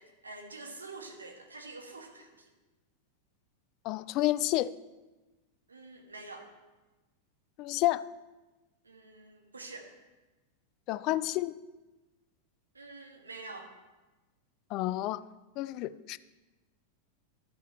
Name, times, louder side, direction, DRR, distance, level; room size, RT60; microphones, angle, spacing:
voice 1, 0.0-2.5 5.7-6.5 8.8-9.9 12.7-13.7, right 3 dB, 75° right, 3 dB, 1.5 m, -46 dB
voice 2, 3.8-4.7 7.6-8.0 10.9-11.6 14.7-15.2 15.6-16.2, left 16 dB, 40° left, 17 dB, 0.3 m, -30 dB
12.5 x 7.3 x 4.4 m, 1.1 s
figure-of-eight pair, 90°, 0 cm